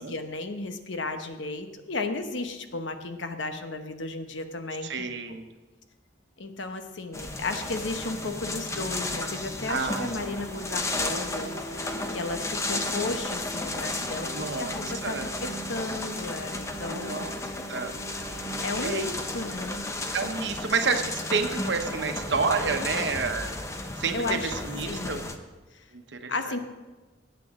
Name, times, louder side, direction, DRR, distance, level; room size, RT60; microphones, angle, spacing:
voice 1, 0.0-4.9 6.4-17.6 18.6-19.9 24.1-24.5 24.8-25.3 26.3-26.6, left 3 dB, 85° left, 7 dB, 1.0 m, -34 dB
voice 2, 4.8-5.4 9.7-10.3 14.3-14.6 15.0-15.3 16.9-17.3 17.7-17.9 18.8-19.1 20.1-23.5 24.0-25.2 25.9-26.5, right 4 dB, 70° right, 6 dB, 1.0 m, -29 dB
sound 1, 7.1-25.4, left 2 dB, 15° left, 0.7 m, -34 dB
sound 2, 7.6-21.2, right 1 dB, 35° left, 4.9 m, -43 dB
18.5 x 8.4 x 3.7 m, 1.2 s
head